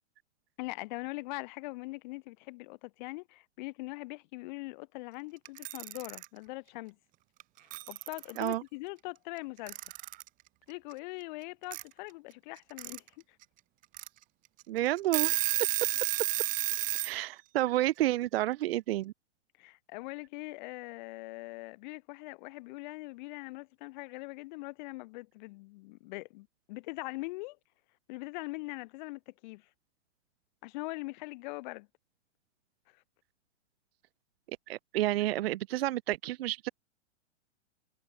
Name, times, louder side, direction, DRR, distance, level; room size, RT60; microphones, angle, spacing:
voice 1, 0.6-7.0 7.9-9.8 10.7-13.0 19.6-27.6 28.1-29.7 30.6-31.9, left 24 dB, 40° left, 2.9 m, -42 dB
Alarm / Clock, 5.5-6.3 7.4-7.5 7.7-8.5 9.7-10.3 11.7-11.8 12.6-13.0 13.4-13.5 13.9-14.1 14.6-14.7 15.0-17.1, right 18 dB, 20° right, 1.1 m, -31 dB
voice 2, 14.7-15.4 17.0-19.1 34.7-36.7, right 15 dB, 60° right, 0.5 m, -30 dB
hypercardioid pair, 150°, 35 cm